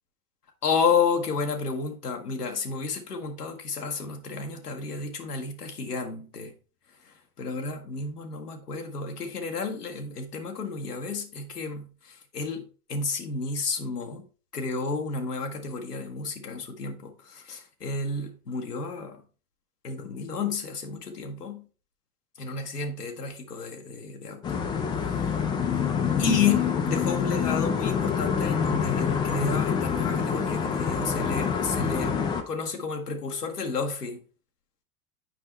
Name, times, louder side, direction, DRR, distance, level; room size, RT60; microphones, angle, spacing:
voice 1, 0.6-6.5 7.1-14.3 14.5-19.2 19.8-21.7 22.4-24.6 26.2-34.2, left 5 dB, 80° left, 1.2 m, -31 dB
sound 1, 24.4-32.4, left 7 dB, 10° left, 0.3 m, -26 dB
7.6 x 5.3 x 3.1 m
figure-of-eight pair, 80°, 46 cm